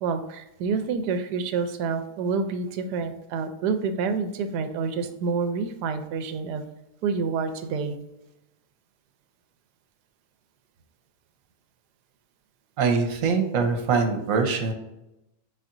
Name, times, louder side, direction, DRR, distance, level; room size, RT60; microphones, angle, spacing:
voice 1, 0.0-6.6 7.0-7.9, right 5 dB, 85° right, 8 dB, 1.2 m, -28 dB
voice 2, 12.8-14.7, right 5 dB, 60° right, 4 dB, 1.1 m, -23 dB
4.9 x 4.2 x 2.5 m, 0.91 s
omnidirectional pair, 1.7 m